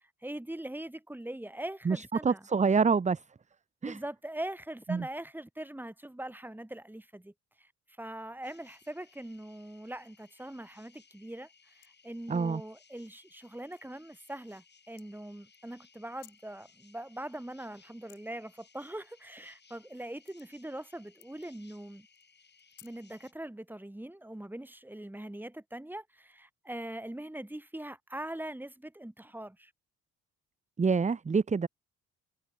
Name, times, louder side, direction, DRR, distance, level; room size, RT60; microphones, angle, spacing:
voice 1, 0.2-2.4 3.8-7.7 8.0-22.1 22.8-29.7, right 1 dB, 5° right, 3.4 m, -42 dB
voice 2, 1.8-3.2 3.8-4.0 4.9-5.1 12.3-12.6 30.8-31.7, right 5 dB, 25° right, 1.0 m, -26 dB
sound 1, 8.4-23.3, left 5 dB, 35° left, 6.7 m, -63 dB
sound 2, 11.8-12.5 13.1-13.3 13.6-13.8 14.9-15.0 16.0-16.5 17.6-18.2 18.6-19.7 20.0-20.8 21.2-21.5 22.1-23.4, left 15 dB, 85° left, 4.0 m, -59 dB
cardioid pair, 90°, 30 cm